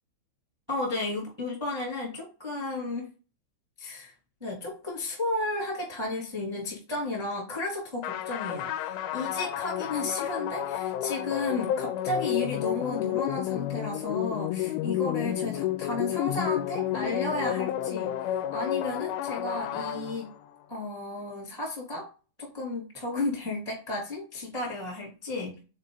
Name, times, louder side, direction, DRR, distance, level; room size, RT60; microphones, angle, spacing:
voice 1, 0.7-3.1 3.8-4.1 4.4-20.3 20.7-22.1 22.4-25.6, left 2 dB, 10° right, -3 dB, 1.4 m, -33 dB
sound 1, 8.0-20.6, left 12 dB, 90° left, 3.0 m, -31 dB
6.6 x 4.1 x 3.9 m, 0.33 s
omnidirectional pair, 5.4 m